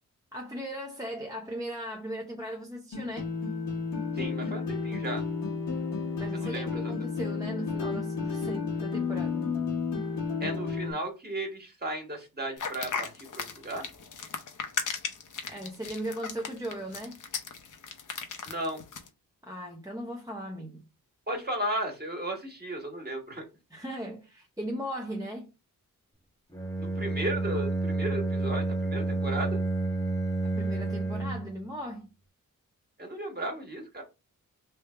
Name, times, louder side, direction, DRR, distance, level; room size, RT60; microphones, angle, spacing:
voice 1, 0.3-3.3 6.2-9.5 15.5-17.2 19.4-20.9 23.7-25.5 30.4-32.1, equal, 10° right, 0.7 m, -38 dB
sound 1, 2.9-10.9, left 5 dB, 90° left, 1.2 m, -32 dB
voice 2, 4.1-5.2 6.3-6.9 10.4-13.8 18.4-18.8 21.3-23.4 26.8-29.6 33.0-34.0, right 1 dB, 30° right, 1.6 m, -35 dB
sound 2, 12.6-19.1, left 5 dB, 65° left, 0.8 m, -36 dB
Bowed string instrument, 26.5-31.6, right 2 dB, 10° left, 1.0 m, -30 dB
3.4 x 2.7 x 3.3 m
cardioid pair, 70°, 34 cm